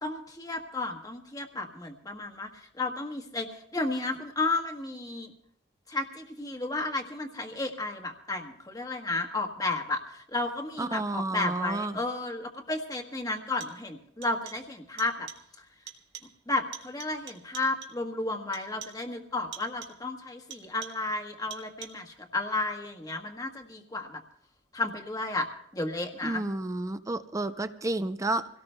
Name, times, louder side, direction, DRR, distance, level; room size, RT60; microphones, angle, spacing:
voice 1, 0.0-5.3 5.9-15.3 15.6-15.7 16.5-24.2 24.7-25.5 25.7-26.4, left 2 dB, 20° left, 4 dB, 1.3 m, -33 dB
voice 2, 10.8-12.0 26.2-28.5, right 2 dB, 20° right, 10 dB, 0.5 m, -31 dB
sound 1, 12.3-12.4 13.4-13.9 14.2-14.7 15.0-15.5 15.9-16.4 16.7-18.1 18.5-19.1 19.5-20.1 20.5-21.2 21.5-22.1, right 8 dB, 75° right, 1.4 m, -46 dB
27.0 x 17.5 x 2.2 m, 0.72 s
head